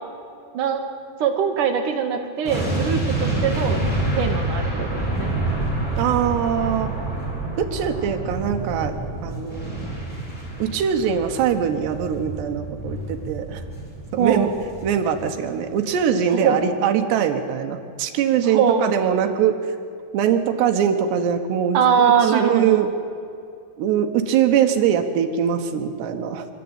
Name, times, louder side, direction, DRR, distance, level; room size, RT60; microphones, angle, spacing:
voice 1, 1.2-3.8 4.2-5.3 14.2-14.5 16.3-16.6 18.5-19.0 21.7-22.9, right 7 dB, 65° right, 5 dB, 2.3 m, -21 dB
sound 1, 2.4-15.6 15.9-16.0, right 2 dB, 20° left, 5.2 m, -28 dB
voice 2, 6.0-6.9 7.6-9.0 9.2-9.7 10.6-13.6 14.1-14.5 14.8-19.6 20.1-22.9 23.8-26.5, right 8 dB, 85° right, 5 dB, 3.2 m, -22 dB
26.5 x 13.0 x 8.8 m, 2.4 s
omnidirectional pair, 4.8 m